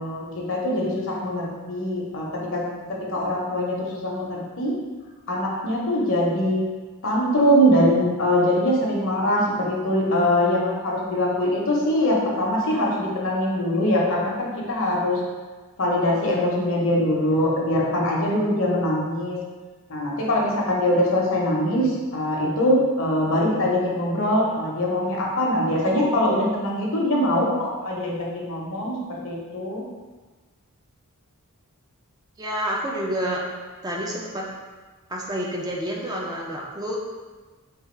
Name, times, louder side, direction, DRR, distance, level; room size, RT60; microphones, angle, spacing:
voice 1, 0.0-2.3 2.5-2.6 3.1-4.7 5.3-6.6 7.0-15.2 15.8-19.4 19.9-29.8, left 1 dB, 60° left, -3 dB, 0.8 m, -22 dB
voice 2, 32.4-33.4 33.8-34.5 35.1-37.0, equal, 15° right, -3 dB, 0.4 m, -28 dB
3.4 x 2.3 x 4.3 m, 1.3 s
head